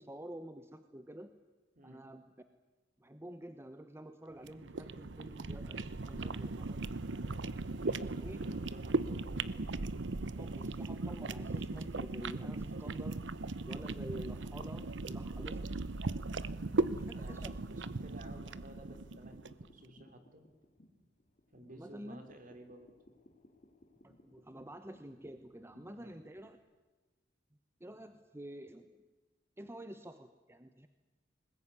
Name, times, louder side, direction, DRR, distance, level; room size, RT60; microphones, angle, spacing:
voice 1, 0.0-1.4 1.8-2.3 3.0-6.8 8.0-8.4 10.4-13.2 13.6-15.6 16.8-17.6 21.7-22.2 24.0-26.6 27.8-28.9 29.6-30.9, right 1 dB, 15° right, 9 dB, 1.0 m, -49 dB
sound 1, 4.4-19.6, right 3 dB, 70° right, 0.8 m, -38 dB
voice 2, 7.7-9.5 16.9-20.4 21.5-22.9 25.9-26.1, right 1 dB, 45° right, 6 dB, 3.4 m, -55 dB
sound 2, 13.7-26.6, left 1 dB, 45° left, 2.9 m, -64 dB
21.0 x 20.5 x 9.8 m, 1.2 s
head